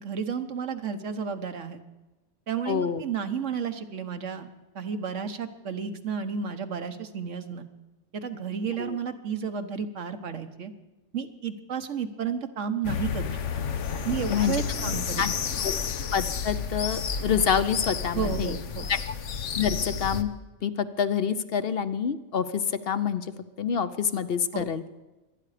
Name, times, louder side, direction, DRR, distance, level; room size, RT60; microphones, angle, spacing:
voice 1, 0.0-1.8 2.5-4.5 4.7-7.7 8.1-10.7 11.1-13.4 14.0-15.2 18.1-18.9 24.5-24.7, right 6 dB, 85° right, 8 dB, 1.5 m, -32 dB
voice 2, 2.7-3.0 8.8-9.0 14.3-14.6 14.9-15.3 15.6-15.8 16.1-18.6 18.9-19.0 19.6-20.3 20.6-23.3 23.6-24.8, left 7 dB, 60° left, 12 dB, 0.9 m, -27 dB
sound 1, 12.8-20.2, left 6 dB, 85° left, 1.2 m, -31 dB
24.5 x 9.7 x 5.0 m, 1.1 s
omnidirectional pair, 1.2 m